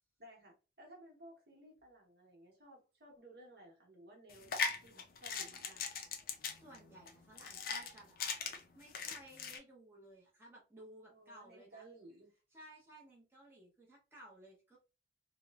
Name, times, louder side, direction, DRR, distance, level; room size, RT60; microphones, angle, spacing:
voice 1, 0.2-5.8 11.1-12.3, right 1 dB, 60° right, 0.9 m, -58 dB
sound 1, 4.3-9.6, left 5 dB, 50° left, 0.4 m, -40 dB
voice 2, 6.5-8.2 8.7-11.9 12.5-14.8, right 1 dB, 15° right, 0.7 m, -57 dB
2.9 x 2.1 x 2.3 m
head